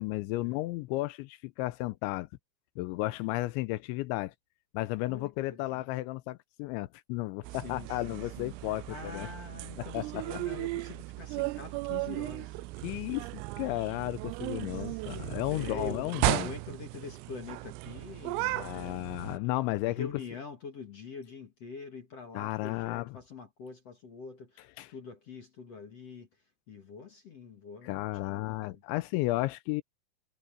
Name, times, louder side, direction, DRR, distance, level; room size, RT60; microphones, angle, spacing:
voice 1, 0.0-2.3 2.8-4.3 4.7-9.3 9.8-10.0 12.8-16.5 18.6-20.1 22.3-23.1 24.8-24.9 27.8-29.8, left 19 dB, 85° left, 2.7 m, -33 dB
voice 2, 5.1-5.8 7.5-12.6 14.7-15.0 15.5-19.1 19.8-26.3 26.7-28.8, left 5 dB, 50° left, 2.0 m, -45 dB
sound 1, 7.4-19.4, right 20 dB, 90° right, 3.4 m, -36 dB
omnidirectional pair, 5.9 m